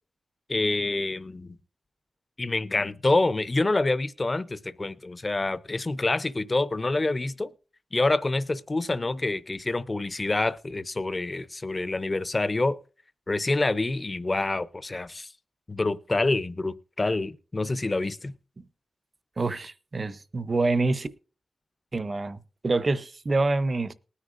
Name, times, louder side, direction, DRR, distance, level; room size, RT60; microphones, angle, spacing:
voice 1, 0.5-1.6 2.4-7.5 7.9-12.8 13.3-15.3 15.7-18.3, left 2 dB, 25° left, 0.5 m, -27 dB
voice 2, 19.4-21.1 21.9-23.9, right 3 dB, 30° right, 0.6 m, -26 dB
20.0 x 9.7 x 2.5 m
wide cardioid pair, 155°, 0 cm